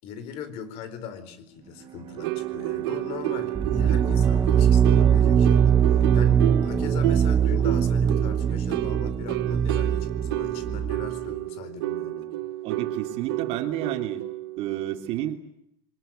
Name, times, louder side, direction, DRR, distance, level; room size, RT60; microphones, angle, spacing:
voice 1, 0.0-12.3, left 7 dB, 60° left, 12 dB, 4.5 m, -39 dB
Bowed string instrument, 1.5-5.9, right 9 dB, 40° right, 2.4 m, -42 dB
sound 1, 2.2-15.1, right 17 dB, 90° right, 1.3 m, -31 dB
sound 2, 3.5-11.2, right 7 dB, 20° right, 1.2 m, -21 dB
voice 2, 12.6-14.2 14.6-15.4, right 12 dB, 55° right, 6 dB, 2.9 m, -30 dB
23.5 x 21.0 x 9.3 m, 0.73 s
supercardioid pair, 130°, 12 cm